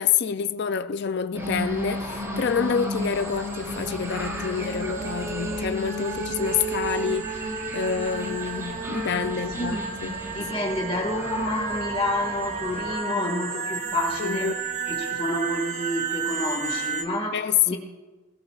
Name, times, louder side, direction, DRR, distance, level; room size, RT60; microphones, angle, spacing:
voice 1, 0.0-7.4 7.7-10.1 14.2-14.6 17.3-17.8, left 7 dB, 50° left, 0.4 m, -27 dB
sound 1, 1.3-13.0, equal, 15° right, 3.5 m, -39 dB
sound 2, 1.4-17.0, right 3 dB, 35° right, 0.9 m, -32 dB
voice 2, 9.5-9.9 10.3-14.5 14.9-17.8, left 1 dB, 25° left, 1.8 m, -29 dB
21.0 x 17.0 x 2.4 m
head